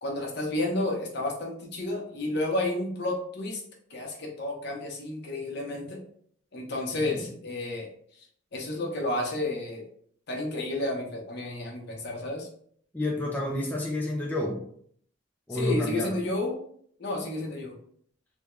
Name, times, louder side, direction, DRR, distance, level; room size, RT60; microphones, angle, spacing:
voice 1, 0.0-3.6 3.9-6.0 6.5-7.9 8.5-9.8 10.3-12.5 15.5-16.6 17.0-17.7, left 2 dB, 60° left, -1 dB, 0.9 m, -31 dB
voice 2, 12.9-14.6 15.5-16.2, left 1 dB, 10° left, -2 dB, 0.4 m, -30 dB
3.5 x 2.3 x 3.0 m, 0.62 s
head